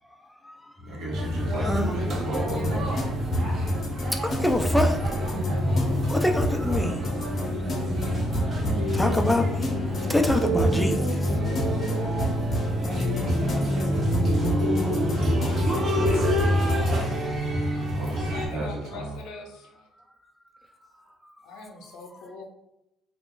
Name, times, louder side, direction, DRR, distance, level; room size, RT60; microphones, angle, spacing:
voice 1, 0.0-2.3 4.1-5.2 6.1-7.1 8.9-9.7 10.1-11.4 19.9-22.4, left 1 dB, 10° left, 4 dB, 0.3 m, -28 dB
voice 2, 0.8-3.0 3.3-3.8 5.8-6.2 7.4-9.0 11.7-11.8 13.0-17.0 17.4-19.2 21.0-21.1, right 1 dB, 70° right, -3 dB, 1.1 m, -37 dB
sound 1, 1.1-18.5, equal, 45° right, 0.9 m, -26 dB
sound 2, 2.3-16.9, equal, 40° left, 0.6 m, -32 dB
sound 3, 4.4-16.8, right 1 dB, 15° right, 1.3 m, -41 dB
voice 3, 18.2-19.9 21.4-22.4, left 3 dB, 85° left, 2 dB, 0.6 m, -42 dB
2.3 x 2.3 x 3.6 m, 0.89 s
cardioid pair, 110°, 0 cm